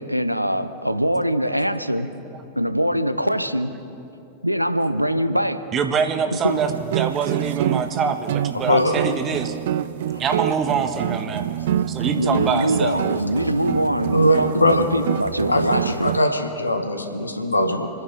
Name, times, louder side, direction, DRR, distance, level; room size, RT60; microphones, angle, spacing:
voice 1, 0.0-2.1 2.6-3.7 4.4-5.6 6.4-6.6 12.2-16.1, equal, 90° right, 10 dB, 0.7 m, -23 dB
voice 2, 5.7-9.6 10.2-11.4 11.9-13.0, right 6 dB, 25° right, 7 dB, 1.3 m, -24 dB
sound 1, 6.5-16.2, right 11 dB, 55° right, 0.4 m, -27 dB
voice 3, 8.5-8.9 14.1-14.8 15.5-17.9, left 1 dB, 80° left, 5 dB, 1.4 m, -21 dB
29.0 x 10.5 x 3.9 m, 2.8 s
figure-of-eight pair, 90°, 0 cm